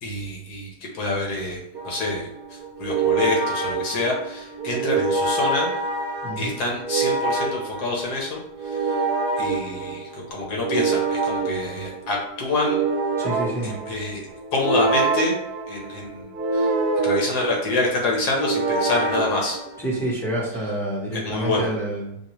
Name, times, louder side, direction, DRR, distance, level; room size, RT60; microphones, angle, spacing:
voice 1, 0.0-5.7 6.4-9.0 9.4-12.8 13.6-15.4 15.7-16.7 17.0-19.6 21.1-21.7, left 2 dB, 75° left, -2 dB, 1.6 m, -27 dB
sound 1, 1.7-20.1, right 4 dB, 75° right, 1.1 m, -26 dB
voice 2, 6.2-6.5 13.2-13.8 19.8-22.2, right 1 dB, ahead, -5 dB, 0.6 m, -28 dB
5.3 x 2.1 x 3.0 m, 0.79 s
omnidirectional pair, 1.7 m